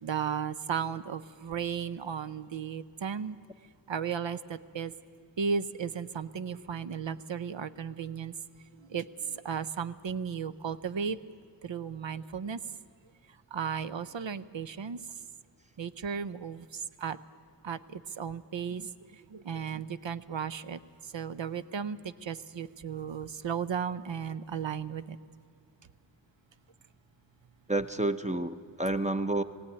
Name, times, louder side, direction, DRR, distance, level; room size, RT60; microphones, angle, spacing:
voice 1, 0.0-3.4 3.9-4.9 5.4-8.3 8.9-11.2 11.6-12.6 13.5-15.0 15.8-16.7 17.0-17.2 17.6-18.9 19.3-20.8 21.1-25.2, right 7 dB, 80° right, 12 dB, 0.7 m, -35 dB
voice 2, 27.7-29.4, right 2 dB, 15° right, 9 dB, 0.7 m, -29 dB
19.0 x 16.0 x 9.8 m, 2.2 s
wide cardioid pair, 60°, 44 cm